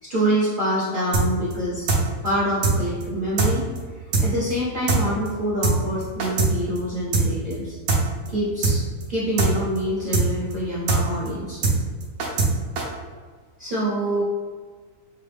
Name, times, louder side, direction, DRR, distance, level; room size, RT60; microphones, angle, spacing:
voice 1, 0.0-1.9 2.2-3.7 3.9-7.8 8.3-8.8 9.1-11.6 13.6-14.2, equal, 45° right, -8 dB, 0.8 m, -26 dB
sound 1, 1.1-1.3 1.5-1.6 1.9-2.0 2.3-2.4 2.6-2.8 3.0-3.1 3.4-3.5 3.8-3.9 4.1-4.3 4.5-4.6 4.9-5.0 5.3-5.4 5.6-5.8 6.0-6.5 6.8-6.9 7.1-7.3 7.5-7.6 7.9-8.0 8.3-8.4 8.6-8.8 9.0-9.1 9.4-9.5 9.8-9.9 10.1-10.3 10.5-10.6 10.9-11.0 11.3-11.4 11.6-11.8 12.0-12.5 12.8-12.9, right 4 dB, 65° right, 1.0 m, -20 dB
4.7 x 2.1 x 3.3 m, 1.5 s
omnidirectional pair, 1.7 m